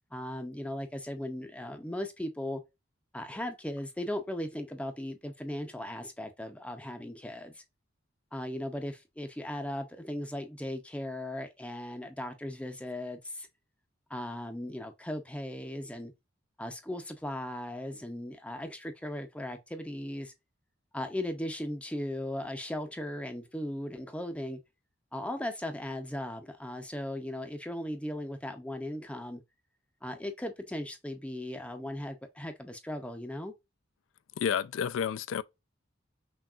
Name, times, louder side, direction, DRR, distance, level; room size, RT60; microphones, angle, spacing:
voice 1, 0.1-2.6 3.1-7.6 8.3-13.5 14.1-16.1 16.6-20.3 20.9-24.6 25.1-29.4 30.0-33.5, left 1 dB, 5° left, 0.5 m, -37 dB
voice 2, 34.4-35.4, left 7 dB, 85° left, 0.3 m, -30 dB
5.9 x 2.3 x 2.4 m
head